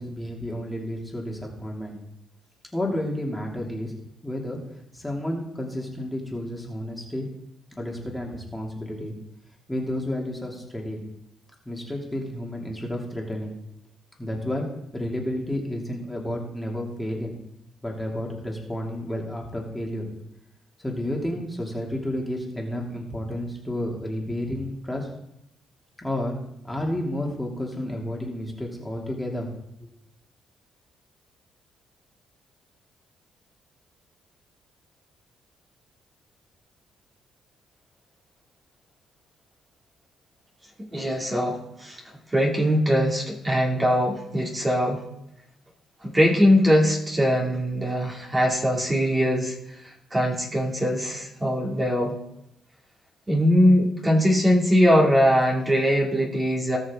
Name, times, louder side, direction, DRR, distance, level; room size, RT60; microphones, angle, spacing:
voice 1, 0.0-1.9 2.7-3.9 4.2-4.6 4.9-7.3 7.8-9.1 9.7-11.0 11.7-13.5 14.2-14.7 14.9-17.3 17.8-20.1 20.8-25.1 26.0-26.4 26.6-29.5, left 1 dB, 10° left, -2 dB, 2.6 m, -31 dB
voice 2, 40.9-42.0 42.3-45.0 46.0-52.1 53.3-56.8, equal, 20° right, -2 dB, 2.5 m, -21 dB
19.0 x 6.4 x 3.7 m, 0.81 s
cardioid pair, 90°, 0 cm